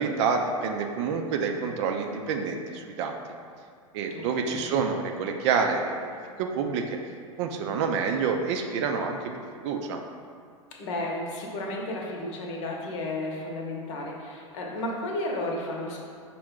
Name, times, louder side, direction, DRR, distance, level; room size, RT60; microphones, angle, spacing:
voice 1, 0.0-3.2 3.9-7.0 7.4-9.3 9.6-10.0, right 5 dB, 55° right, 4 dB, 0.5 m, -28 dB
voice 2, 4.1-4.7 10.8-16.0, left 1 dB, 60° left, -1 dB, 0.9 m, -33 dB
5.2 x 2.2 x 3.6 m, 2.2 s
hypercardioid pair, 95°, 18 cm